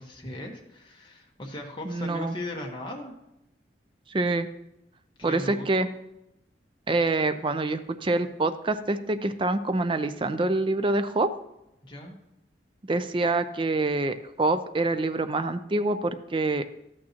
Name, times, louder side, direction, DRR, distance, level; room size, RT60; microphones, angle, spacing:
voice 1, 0.0-3.1 5.2-5.9 11.8-12.2, left 1 dB, 25° left, 0 dB, 1.2 m, -38 dB
voice 2, 1.8-2.4 4.1-4.5 5.2-5.9 6.9-11.3 12.9-16.6, right 2 dB, 30° right, 11 dB, 0.4 m, -26 dB
13.0 x 8.7 x 2.9 m, 0.85 s
head